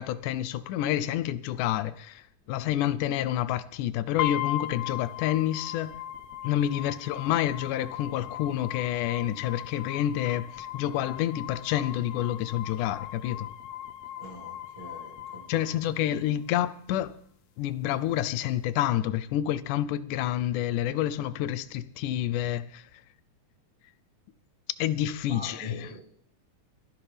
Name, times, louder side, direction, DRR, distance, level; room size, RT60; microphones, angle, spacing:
voice 1, 0.0-5.9 6.4-13.5 15.5-17.1 17.6-22.8 24.8-25.9, left 12 dB, 90° left, 2.2 m, -28 dB
sound 1, 4.2-16.2, left 12 dB, 70° left, 1.9 m, -38 dB
voice 2, 14.2-15.7 25.3-26.0, right 1 dB, 35° right, 2.1 m, -44 dB
22.0 x 11.5 x 3.4 m
omnidirectional pair, 3.6 m